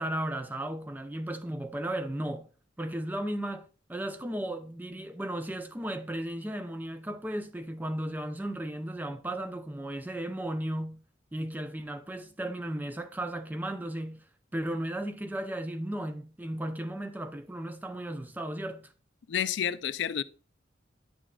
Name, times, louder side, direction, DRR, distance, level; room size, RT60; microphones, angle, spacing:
voice 1, 0.0-2.5 2.8-11.0 11.3-14.2 14.5-18.9, right 1 dB, 10° right, 0.4 m, -35 dB
voice 2, 19.3-20.2, left 9 dB, 70° left, 0.4 m, -30 dB
10.0 x 6.1 x 2.3 m
head